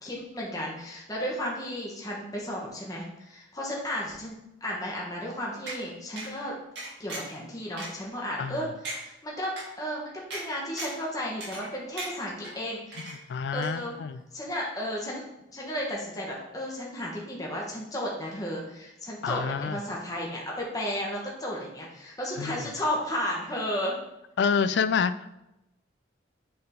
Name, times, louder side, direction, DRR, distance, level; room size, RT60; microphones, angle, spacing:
voice 1, 0.0-6.6 7.0-13.2 13.5-14.0 14.3-15.2 15.5-24.0, equal, 20° left, -3 dB, 1.1 m, -34 dB
sound 1, 5.7-5.8 6.2-6.3 6.8-7.4 7.8-7.9 8.4-8.5 8.8-9.0 9.6-9.7 10.3-10.4 10.8-11.0 11.4-11.7 12.0-12.5 12.9-13.4 13.6-13.7, right 2 dB, 65° right, 2.2 m, -37 dB
voice 2, 13.3-14.2 19.2-19.8 22.4-22.7 24.4-25.1, left 6 dB, 65° left, 13 dB, 0.3 m, -27 dB
6.8 x 3.8 x 3.7 m, 0.90 s
head